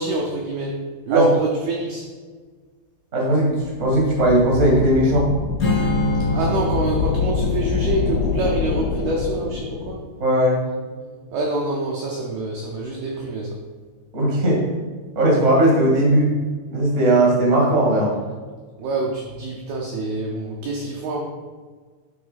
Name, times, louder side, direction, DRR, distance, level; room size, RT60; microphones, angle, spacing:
voice 1, 0.0-2.1 6.3-10.1 11.3-13.6 18.8-21.2, right 2 dB, 85° right, -1 dB, 2.1 m, -25 dB
voice 2, 3.1-5.3 10.2-10.6 14.1-14.6 15.1-16.3 16.7-18.1, right 1 dB, 70° right, -3 dB, 0.7 m, -18 dB
sound 1, 3.6-10.1, left 6 dB, 80° left, 2.8 m, -26 dB
Strum, 5.6-10.9, left 2 dB, 60° left, 0.9 m, -27 dB
9.2 x 4.0 x 5.7 m, 1.5 s
omnidirectional pair, 5.6 m